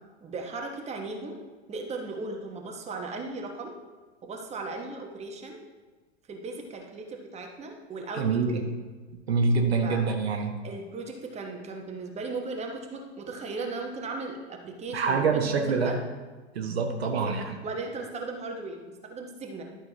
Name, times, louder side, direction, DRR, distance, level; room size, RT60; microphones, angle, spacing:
voice 1, 0.2-1.3 1.7-3.7 4.2-5.6 6.3-8.7 9.8-10.0 10.6-16.0 17.1-17.3 17.6-19.6, right 3 dB, 20° right, 2 dB, 1.2 m, -37 dB
voice 2, 8.2-8.6 9.3-10.6 14.9-15.9 16.5-17.5, right 4 dB, 65° right, 4 dB, 1.1 m, -25 dB
11.5 x 6.3 x 3.0 m, 1.3 s
figure-of-eight pair, 85°, 33 cm